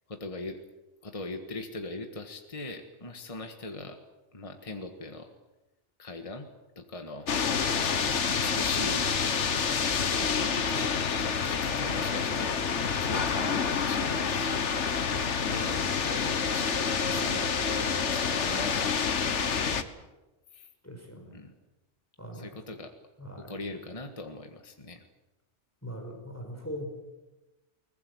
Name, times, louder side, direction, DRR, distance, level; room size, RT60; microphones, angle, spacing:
voice 1, 0.1-0.6 1.0-4.0 4.3-5.3 6.0-6.5 6.8-7.4 8.3-9.1 10.1-12.6 13.0-14.7 15.4-19.0 19.3-19.9 20.5-20.7 21.3-21.5 22.3-22.9 23.4-25.0, left 2 dB, 30° left, 5 dB, 1.7 m, -40 dB
sound 1, 7.3-19.8, left 6 dB, 75° left, 1.5 m, -28 dB
voice 2, 20.8-21.4 22.2-22.5 23.2-23.5 25.8-26.9, equal, 10° left, 3 dB, 5.1 m, -41 dB
22.5 x 20.0 x 8.0 m, 1.1 s
omnidirectional pair, 1.2 m